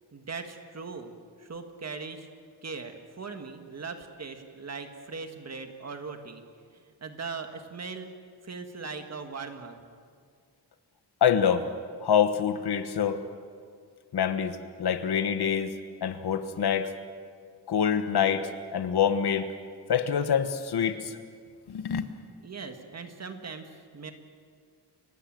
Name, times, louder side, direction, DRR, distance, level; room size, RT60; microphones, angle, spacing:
voice 1, 0.1-1.1 1.4-2.3 2.6-6.4 6.7-8.1 8.4-9.8 22.4-24.1, right 4 dB, 40° right, 6 dB, 1.8 m, -39 dB
voice 2, 11.2-11.7 12.0-13.2 14.1-15.7 16.0-16.9 17.7-19.5 19.9-21.2 21.7-22.1, left 8 dB, 70° left, 10 dB, 1.3 m, -26 dB
29.0 x 16.5 x 7.7 m, 2.1 s
wide cardioid pair, 160°, 41 cm